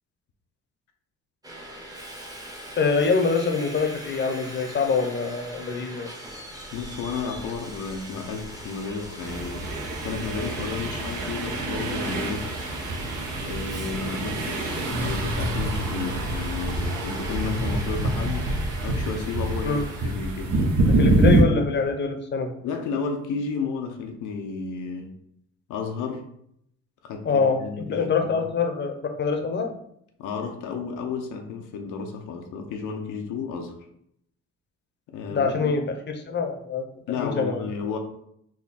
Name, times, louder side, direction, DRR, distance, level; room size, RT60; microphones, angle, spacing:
Subway metro underground, 1.4-20.1, equal, 10° right, 0.7 m, -40 dB
voice 1, 2.8-6.1 19.6-19.8 21.0-22.5 27.2-29.7 35.3-36.9 37.2-37.6, left 4 dB, 35° left, 5 dB, 0.7 m, -25 dB
voice 2, 6.7-9.7 10.0-12.5 13.4-18.6 18.8-20.6 22.6-25.1 25.7-26.2 27.0-28.5 30.2-33.8 35.1-35.8 37.1-38.0, left 5 dB, 85° left, 4 dB, 0.6 m, -32 dB
sound 1, 9.2-21.4, right 2 dB, 75° right, 0.9 m, -26 dB
3.6 x 2.2 x 4.0 m, 0.72 s
cardioid pair, 90°, 30 cm